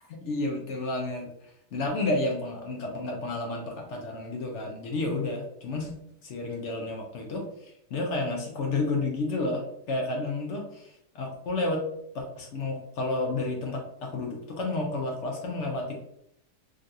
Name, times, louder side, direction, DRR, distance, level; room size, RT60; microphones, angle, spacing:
voice 1, 0.2-1.3 1.7-5.9 6.2-11.8 12.1-15.9, left 2 dB, 65° left, 1 dB, 0.7 m, -31 dB
3.7 x 2.3 x 2.6 m, 0.73 s
omnidirectional pair, 1.8 m